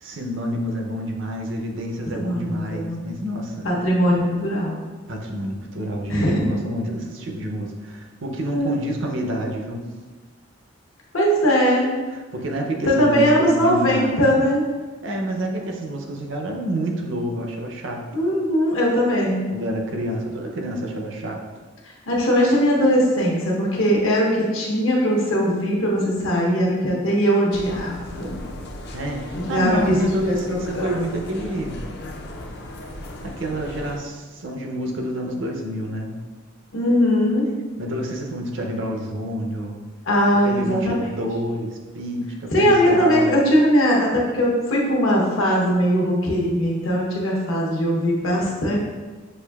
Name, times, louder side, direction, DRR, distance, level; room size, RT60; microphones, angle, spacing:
voice 1, 0.0-3.7 5.1-9.8 12.1-14.4 15.0-18.0 19.5-21.4 28.9-31.8 32.8-32.9 33.2-36.2 37.8-39.8 40.4-43.4, equal, 65° right, 1 dB, 0.6 m, -28 dB
voice 2, 2.1-3.0 3.6-4.8 6.1-6.6 8.5-8.7 11.1-11.9 12.9-14.6 18.1-19.5 22.1-28.4 29.3-30.9 36.7-37.5 40.1-41.2 42.5-48.8, equal, 80° left, -3 dB, 1.0 m, -20 dB
sound 1, 27.5-34.0, left 1 dB, 55° left, 0.4 m, -36 dB
6.4 x 2.6 x 2.3 m, 1.3 s
head